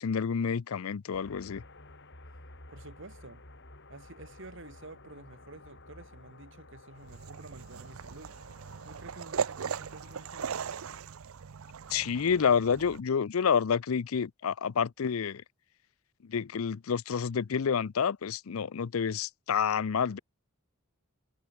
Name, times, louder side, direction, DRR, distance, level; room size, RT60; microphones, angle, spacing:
voice 1, 0.0-1.6 11.9-15.4 16.2-20.2, left 6 dB, 90° left, 0.5 m, -29 dB
sound 1, 1.1-11.0, left 2 dB, 60° left, 7.6 m, -53 dB
voice 2, 2.7-3.4 3.9-8.4 8.8-10.6, right 2 dB, 65° right, 2.2 m, -50 dB
sound 2, 7.0-13.0, right 7 dB, 90° right, 0.6 m, -38 dB
head